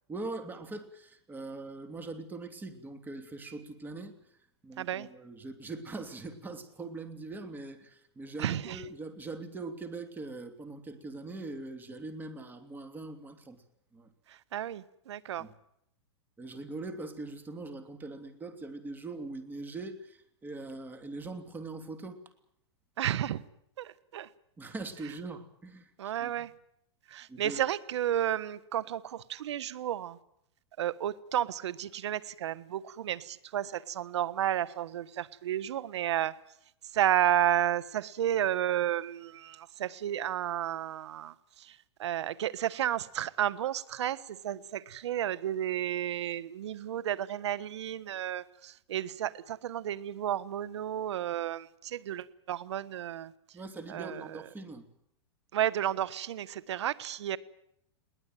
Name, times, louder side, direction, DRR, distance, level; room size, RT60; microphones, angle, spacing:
voice 1, 0.1-4.4 4.6-13.6 13.9-14.1 15.4-15.5 16.4-22.2 24.6-26.5 27.3-27.6 53.5-54.8, right 3 dB, 15° right, 6 dB, 2.8 m, -42 dB
voice 2, 4.8-5.1 8.4-8.8 14.5-15.4 23.0-23.4 23.8-24.3 26.0-26.5 27.1-30.2 30.8-36.3 36.9-41.3 42.0-53.3 53.9-54.2 55.5-57.4, right 11 dB, 75° right, 16 dB, 1.3 m, -32 dB
21.5 x 19.0 x 9.2 m, 0.75 s
hypercardioid pair, 130°, 15 cm